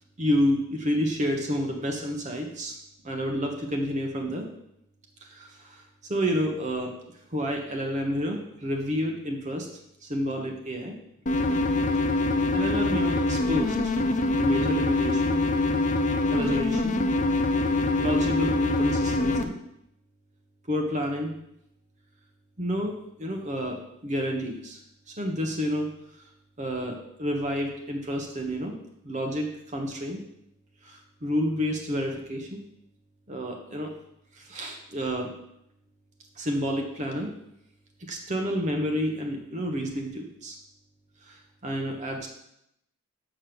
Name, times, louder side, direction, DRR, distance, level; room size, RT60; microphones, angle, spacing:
voice 1, 0.2-2.7 3.0-4.5 5.2-5.8 6.1-6.9 7.3-9.7 10.0-10.9 12.5-13.9 14.4-15.4 16.3-17.0 18.0-19.5 20.7-21.3 22.6-23.8 24.0-24.8 25.1-25.9 26.6-28.7 29.0-30.2 30.8-32.6 33.3-33.9 34.3-35.3 36.4-37.3 38.1-40.6 41.2-42.3, equal, 30° right, 2 dB, 1.0 m, -29 dB
sound 1, 11.3-19.4, left 2 dB, 35° left, 0.5 m, -24 dB
6.8 x 6.3 x 6.0 m, 0.79 s
head